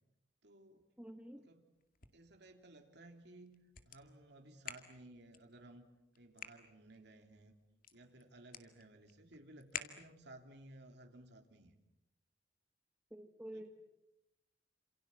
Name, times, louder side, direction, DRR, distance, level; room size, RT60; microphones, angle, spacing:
voice 1, 0.4-0.9 1.4-1.7 2.1-5.9 6.2-7.5 7.9-11.7 13.5-13.7, right 1 dB, 65° right, 4 dB, 3.4 m, -58 dB
voice 2, 1.0-1.5 13.1-13.7, right 1 dB, 5° right, 5 dB, 1.3 m, -49 dB
sound 1, 1.7-10.4, left 8 dB, 50° left, 2.2 m, -53 dB
28.5 x 27.5 x 7.5 m, 0.89 s
head